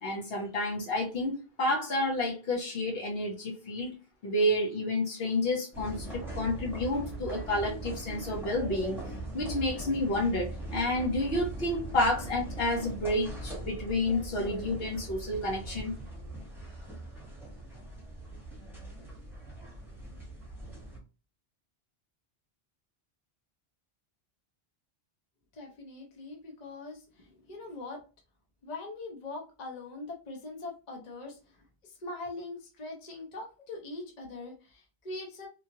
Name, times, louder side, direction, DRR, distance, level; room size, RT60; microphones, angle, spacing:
voice 1, 0.0-3.9 4.2-9.0 9.3-15.9, left 1 dB, 70° left, -1 dB, 1.0 m, -30 dB
sound 1, 5.7-21.0, right 2 dB, ahead, 1.0 m, -41 dB
voice 2, 25.6-28.0 28.6-31.3 31.8-35.5, left 2 dB, 45° left, 1 dB, 0.8 m, -42 dB
3.0 x 2.3 x 2.7 m, 0.32 s
omnidirectional pair, 1.1 m